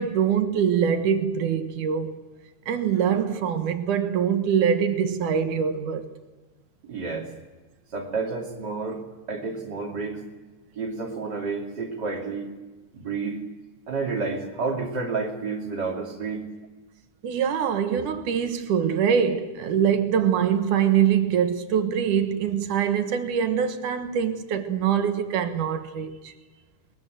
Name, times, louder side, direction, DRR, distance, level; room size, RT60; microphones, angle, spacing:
voice 1, 0.0-2.1 2.7-6.1 17.2-26.3, right 8 dB, 80° right, 2.9 m, -24 dB
voice 2, 6.8-7.3 7.9-9.0 9.3-10.2 10.8-12.5 12.9-13.4 13.9-16.4, right 4 dB, 35° right, 3.1 m, -30 dB
21.0 x 21.0 x 7.7 m
omnidirectional pair, 3.5 m